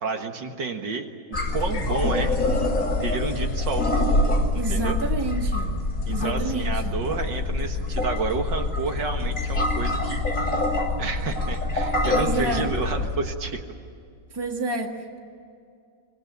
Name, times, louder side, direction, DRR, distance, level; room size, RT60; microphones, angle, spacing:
voice 1, 0.0-2.4 3.0-3.9 4.5-5.0 6.1-10.2 11.0-13.7, right 4 dB, 65° right, 5 dB, 2.2 m, -30 dB
sound 1, 1.3-13.2, left 2 dB, 40° left, 3.0 m, -25 dB
voice 2, 4.5-5.7 6.1-6.9 12.1-12.7 14.3-15.2, right 2 dB, 10° right, 3 dB, 1.7 m, -29 dB
25.0 x 21.0 x 9.3 m, 2.4 s
omnidirectional pair, 2.2 m